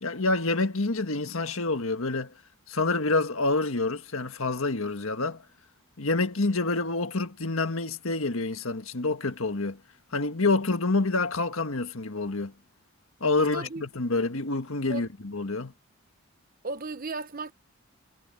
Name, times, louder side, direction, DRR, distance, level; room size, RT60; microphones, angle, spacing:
voice 1, 0.0-2.3 2.7-5.4 6.0-9.8 10.1-12.5 13.2-15.7, left 3 dB, 75° left, 1.6 m, -27 dB
voice 2, 13.4-13.9 14.9-15.1 16.6-17.5, right 3 dB, 40° right, 1.0 m, -35 dB
head